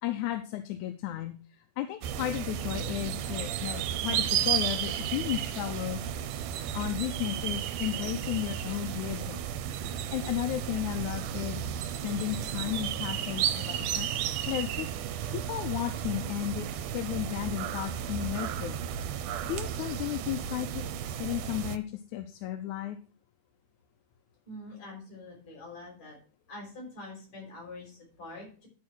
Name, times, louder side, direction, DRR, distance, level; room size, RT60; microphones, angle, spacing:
voice 1, 0.0-1.4 1.8-6.0 6.7-9.5 10.1-11.7 12.0-14.9 15.3-18.8 19.5-20.8 21.2-21.8 22.1-23.0, left 13 dB, 80° left, 7 dB, 2.1 m, -34 dB
sound 1, 2.0-21.8, right 9 dB, 85° right, 2.3 m, -33 dB
voice 2, 24.4-26.2 26.5-28.7, left 2 dB, 60° left, -1 dB, 6.8 m, -45 dB
12.0 x 4.8 x 6.2 m, 0.38 s
omnidirectional pair, 3.5 m